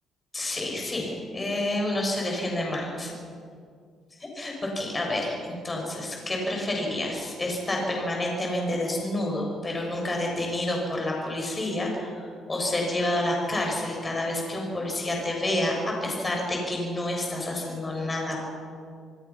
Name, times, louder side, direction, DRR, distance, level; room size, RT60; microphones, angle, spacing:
voice 1, 0.3-3.1 4.2-18.4, left 1 dB, 20° left, 0 dB, 6.8 m, -29 dB
28.0 x 20.0 x 6.0 m, 2.2 s
cardioid pair, 135°, 0 cm